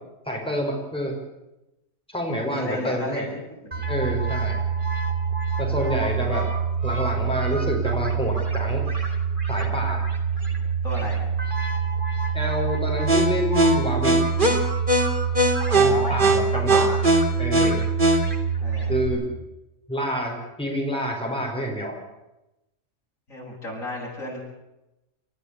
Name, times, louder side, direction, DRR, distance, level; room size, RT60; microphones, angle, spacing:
voice 1, 0.2-1.2 2.1-3.3 3.9-4.6 5.6-6.5 6.8-8.9 9.5-10.0 12.3-14.2 15.7-16.8 17.4-17.9 18.9-19.2 19.9-22.0, equal, 5° left, 0 dB, 5.0 m, -28 dB
voice 2, 2.4-3.8 5.7-6.1 10.8-11.3 15.7-17.1 18.6-19.0 23.3-24.4, left 1 dB, 70° left, -2 dB, 8.3 m, -33 dB
sound 1, 3.7-19.1, right 3 dB, 35° right, 3.4 m, -23 dB
29.0 x 14.5 x 8.3 m, 0.94 s
omnidirectional pair, 1.5 m